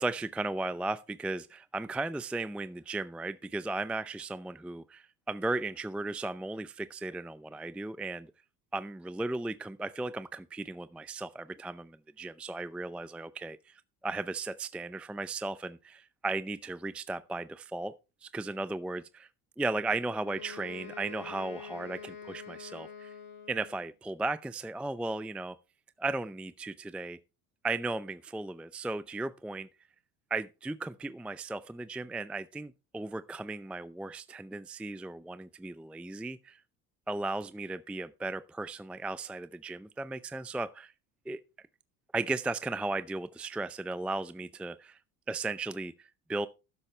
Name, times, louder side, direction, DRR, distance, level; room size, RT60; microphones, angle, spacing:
voice 1, 0.0-8.3 8.7-17.9 18.2-19.3 19.6-23.1 23.5-25.6 26.0-27.2 27.6-29.7 30.3-36.6 37.1-40.9 41.3-41.4 42.1-45.0 45.3-46.5, right 2 dB, 5° right, 0.5 m, -36 dB
Wind instrument woodwind instrument, 20.2-23.9, left 7 dB, 60° left, 4.7 m, -46 dB
12.5 x 9.8 x 3.3 m
hypercardioid pair, 70°, 44 cm